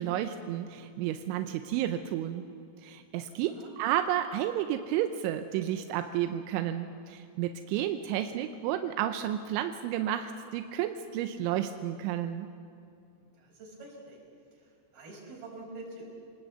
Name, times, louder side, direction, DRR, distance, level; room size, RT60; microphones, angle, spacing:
voice 1, 0.0-2.5 2.8-12.5, right 11 dB, 90° right, 8 dB, 3.1 m, -31 dB
voice 2, 3.5-3.8 13.3-14.2 14.5-16.0, right 2 dB, 55° right, 0 dB, 6.7 m, -46 dB
27.5 x 19.5 x 8.1 m, 2.6 s
omnidirectional pair, 5.3 m